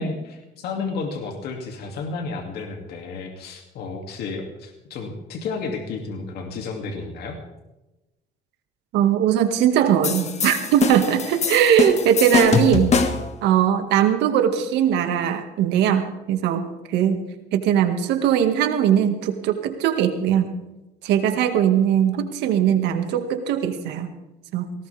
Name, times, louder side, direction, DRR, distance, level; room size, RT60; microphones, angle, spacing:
voice 1, 0.0-7.4, left 4 dB, 70° left, 2 dB, 2.6 m, -32 dB
voice 2, 8.9-13.0 13.4-20.6 21.0-24.1 24.5-24.7, right 9 dB, 85° right, 6 dB, 2.0 m, -20 dB
sound 1, 10.0-13.3, left 5 dB, 40° left, 1.7 m, -23 dB
18.5 x 18.5 x 3.5 m, 1.0 s
cardioid pair, 110°, 17 cm